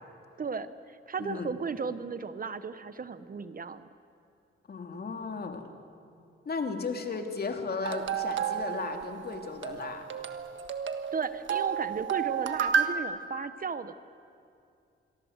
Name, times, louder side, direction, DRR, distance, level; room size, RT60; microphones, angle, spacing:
voice 1, 0.4-3.9 11.1-13.9, right 5 dB, 45° right, 13 dB, 1.0 m, -35 dB
voice 2, 1.2-1.5 4.7-5.6 6.4-10.0, left 4 dB, 50° left, 5 dB, 2.8 m, -35 dB
sound 1, 7.8-12.9, right 8 dB, 70° right, 1.6 m, -31 dB
27.0 x 23.0 x 8.1 m, 2.5 s
cardioid pair, 105°, 21 cm